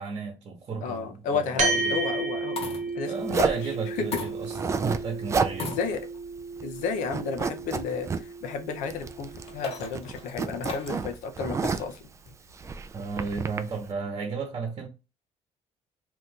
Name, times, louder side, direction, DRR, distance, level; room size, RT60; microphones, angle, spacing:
voice 1, 0.0-1.8 3.1-4.6 4.8-5.8 12.9-14.9, right 5 dB, 40° right, 1.0 m, -33 dB
voice 2, 0.8-2.6 2.9-3.5 3.9-4.1 5.6-6.0 6.6-12.0, left 5 dB, 85° left, 0.7 m, -32 dB
sound 1, 0.9-1.2 2.3-3.1 4.1-4.8 5.5-6.3 7.0-7.1 9.2-11.1 12.3-12.7, left 4 dB, 50° left, 0.9 m, -38 dB
sound 2, 1.6-10.3, right 4 dB, 70° right, 0.9 m, -33 dB
Zipper (clothing), 3.3-3.7 4.4-5.0 5.3-5.6 5.9-6.0 6.4-6.8 7.1-8.2 8.9-9.5 9.8-12.0 12.6-13.6, right 5 dB, 25° right, 0.3 m, -29 dB
2.9 x 2.6 x 3.6 m
cardioid pair, 115°, 13 cm